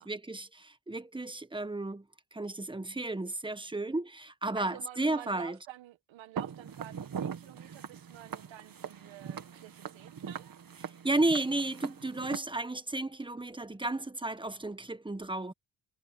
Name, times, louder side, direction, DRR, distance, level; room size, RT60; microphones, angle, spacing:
voice 1, 0.0-2.0 2.3-5.6 11.0-15.5, right 2 dB, 10° right, 1.6 m, -33 dB
voice 2, 4.5-10.5, right 13 dB, 90° right, 1.8 m, -49 dB
Walk footsteps, 6.4-12.4, right 7 dB, 50° right, 2.0 m, -41 dB
cardioid pair, 75°, 44 cm